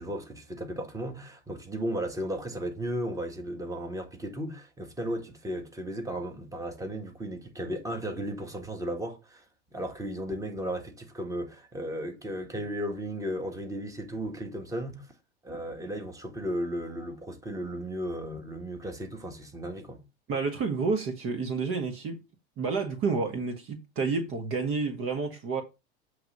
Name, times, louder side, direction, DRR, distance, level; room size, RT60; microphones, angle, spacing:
voice 1, 0.0-9.4 9.7-15.1 15.4-20.0, equal, 10° right, 1.7 m, -35 dB
voice 2, 20.3-22.2 22.6-25.6, right 4 dB, 40° right, 1.4 m, -29 dB
7.9 x 3.4 x 5.3 m
hypercardioid pair, 100°, 32 cm